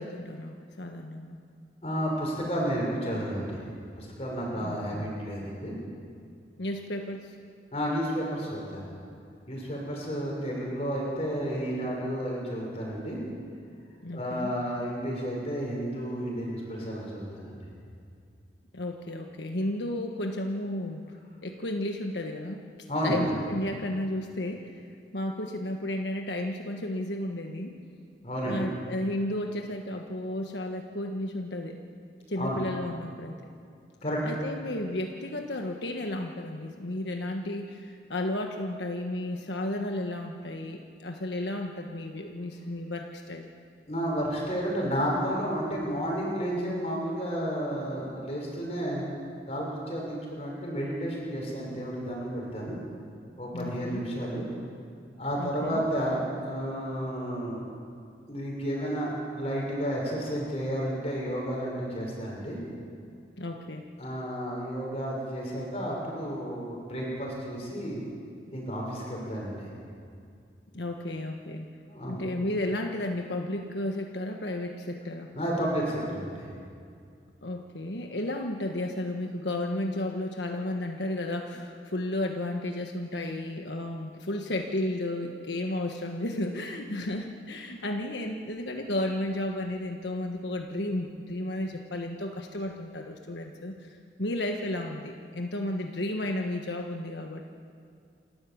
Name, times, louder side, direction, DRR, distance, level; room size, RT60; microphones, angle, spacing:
voice 1, 0.0-1.4 4.6-5.1 6.6-7.4 14.0-14.6 18.7-21.0 21.4-22.6 23.0-24.8 25.1-27.7 28.5-31.8 32.3-33.4 34.2-43.5 53.5-54.1 55.4-55.8 63.4-63.8 70.7-71.7 72.1-75.3 77.4-97.4, left 1 dB, 85° left, 3 dB, 1.4 m, -33 dB
voice 2, 1.8-3.6 4.0-5.7 7.7-8.9 9.5-13.2 14.1-17.6 22.9-23.2 28.2-28.6 32.4-32.6 34.0-34.2 43.9-49.0 49.5-52.8 53.4-54.5 55.2-57.6 58.3-62.6 64.0-68.0 68.5-69.7 71.9-72.2 75.3-76.5, equal, 35° left, -2 dB, 6.3 m, -31 dB
28.0 x 13.0 x 8.6 m, 2.3 s
head